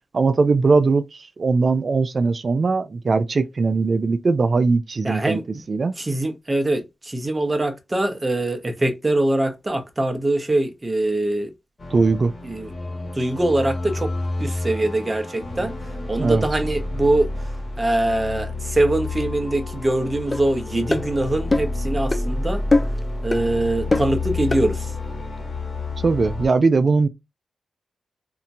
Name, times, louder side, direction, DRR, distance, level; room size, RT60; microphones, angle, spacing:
voice 1, 0.1-5.4 5.7-6.0 11.9-12.3 16.2-16.5 26.0-27.1, right 4 dB, 50° right, 0.4 m, -20 dB
voice 2, 5.0-5.4 6.0-11.5 12.4-12.7 13.2-14.1 14.4-15.7 16.1-17.3 17.8-22.6 23.2-24.9, right 1 dB, 25° right, 0.8 m, -23 dB
sound 1, 11.8-26.5, left 2 dB, 45° left, 1.3 m, -29 dB
sound 2, 20.3-20.4 20.9-21.1 21.5-21.8 22.1-22.3 22.7-23.0 23.3-23.5 23.9-24.2 24.5-24.7, left 2 dB, 25° left, 0.4 m, -21 dB
2.8 x 2.6 x 2.3 m
cardioid pair, 60°, 0 cm